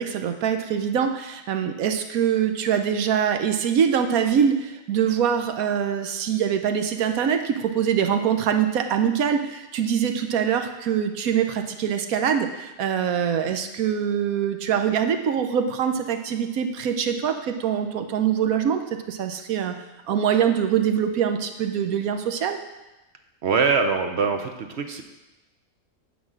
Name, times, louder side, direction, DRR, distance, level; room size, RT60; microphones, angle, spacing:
voice 1, 0.0-19.8 20.1-22.6, right 8 dB, 75° right, 7 dB, 1.1 m, -24 dB
voice 2, 23.4-25.0, right 5 dB, 55° right, 6 dB, 0.8 m, -23 dB
9.4 x 4.2 x 7.5 m, 1.0 s
omnidirectional pair, 1.6 m